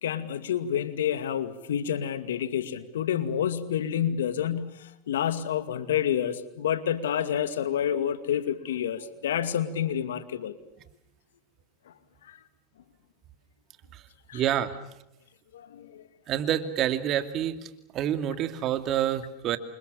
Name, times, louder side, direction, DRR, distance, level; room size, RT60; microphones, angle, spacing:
voice 1, 0.0-10.6 12.3-12.4 14.3-14.4 15.5-16.0, left 9 dB, 85° left, 12 dB, 2.3 m, -29 dB
voice 2, 14.3-14.7 16.3-17.5 17.9-19.6, right 11 dB, 45° right, 10 dB, 2.7 m, -27 dB
29.0 x 25.5 x 7.0 m, 0.84 s
hypercardioid pair, 100°, 0 cm